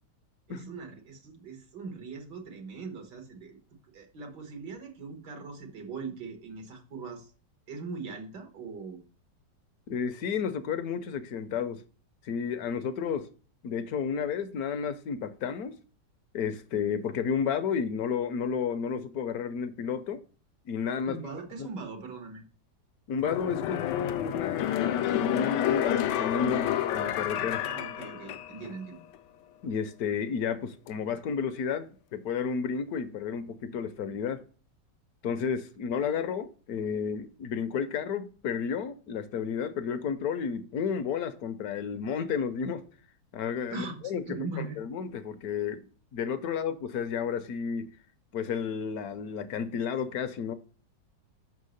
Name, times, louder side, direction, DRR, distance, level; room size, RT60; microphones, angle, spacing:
voice 1, 0.5-3.6 3.9-7.3 7.7-9.0 21.1-22.4 27.7-29.0 43.7-44.9, right 4 dB, 90° right, 2.1 m, -40 dB
voice 2, 9.9-11.8 12.2-13.3 13.6-15.8 16.3-20.2 20.7-21.2 21.6-21.7 23.1-27.6 29.6-34.4 35.2-42.8 43.3-44.2 44.6-45.9 46.1-47.9 48.3-50.5, left 6 dB, 70° left, 1.0 m, -32 dB
sound 1, 23.2-28.8 29.1-29.2, left 11 dB, 90° left, 1.2 m, -30 dB
5.8 x 4.6 x 6.4 m
omnidirectional pair, 1.8 m